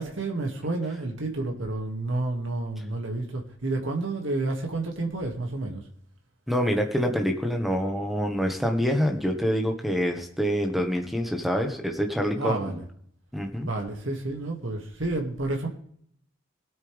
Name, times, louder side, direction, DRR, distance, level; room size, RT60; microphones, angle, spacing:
voice 1, 0.0-5.8 12.4-12.9 13.6-15.7, right 2 dB, 70° right, 2.3 m, -30 dB
voice 2, 6.5-12.8 13.3-13.7, equal, ahead, 1.5 m, -26 dB
21.0 x 8.9 x 3.5 m
head